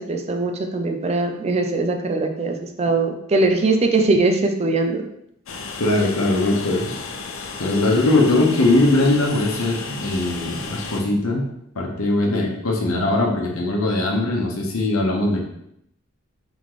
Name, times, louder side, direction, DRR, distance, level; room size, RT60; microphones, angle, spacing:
voice 1, 0.0-5.1, right 3 dB, 30° right, 4 dB, 0.4 m, -21 dB
Train, 5.5-11.0, left 4 dB, 70° left, 0.6 m, -33 dB
voice 2, 5.8-6.9 7.6-11.4 11.7-15.4, left 2 dB, 85° left, 0 dB, 0.9 m, -20 dB
3.8 x 3.6 x 3.1 m, 0.77 s
head